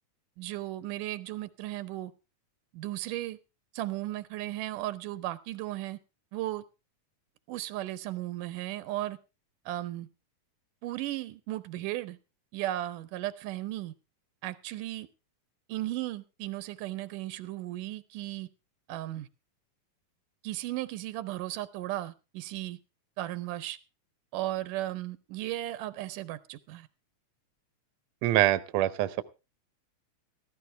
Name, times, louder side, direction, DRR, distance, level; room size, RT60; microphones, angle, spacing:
voice 1, 0.4-2.1 2.7-3.4 3.7-6.0 6.3-6.6 7.5-9.2 9.7-10.1 10.8-12.2 12.5-13.9 14.4-15.1 15.7-18.5 18.9-19.3 20.4-22.8 23.2-23.8 24.3-26.9, right 15 dB, 85° right, 2.4 m, -35 dB
voice 2, 28.2-29.2, right 14 dB, 70° right, 1.8 m, -25 dB
14.5 x 14.0 x 3.3 m
omnidirectional pair, 3.6 m